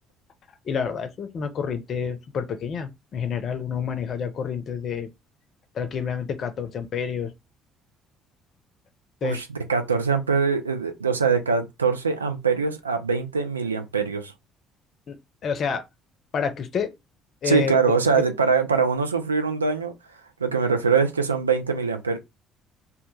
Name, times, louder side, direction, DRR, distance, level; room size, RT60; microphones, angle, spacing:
voice 1, 0.7-5.1 5.7-7.3 9.2-9.4 15.1-15.2 15.4-15.8 16.3-16.9 17.4-17.7, left 6 dB, 45° left, 0.5 m, -28 dB
voice 2, 9.2-14.3 17.4-19.9 20.4-22.2, right 5 dB, 85° right, 0.3 m, -23 dB
2.2 x 2.1 x 3.1 m
figure-of-eight pair, 50°, 0 cm